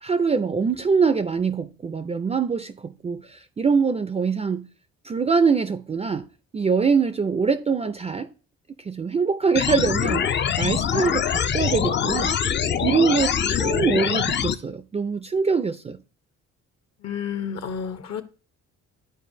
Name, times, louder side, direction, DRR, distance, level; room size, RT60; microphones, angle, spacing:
voice 1, 0.0-4.7 5.0-6.3 6.5-8.3 8.9-12.3 12.8-16.0, right 5 dB, 20° right, 0.4 m, -23 dB
sound 1, 9.6-14.6, left 8 dB, 40° left, 0.4 m, -24 dB
voice 2, 17.0-18.2, left 7 dB, 60° left, 0.9 m, -30 dB
11.0 x 4.4 x 2.6 m
cardioid pair, 90°, 30 cm